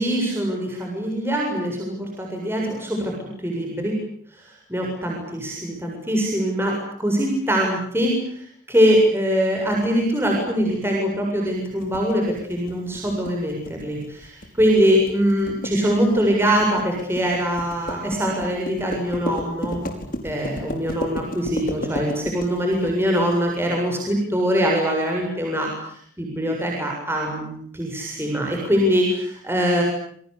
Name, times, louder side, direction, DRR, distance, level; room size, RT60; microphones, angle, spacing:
voice 1, 0.0-4.0 4.3-19.9 20.2-29.8, equal, 10° right, 0 dB, 7.5 m, -23 dB
sound 1, 11.8-23.4, equal, 45° left, 5.2 m, -33 dB
28.5 x 23.5 x 8.7 m, 0.63 s
head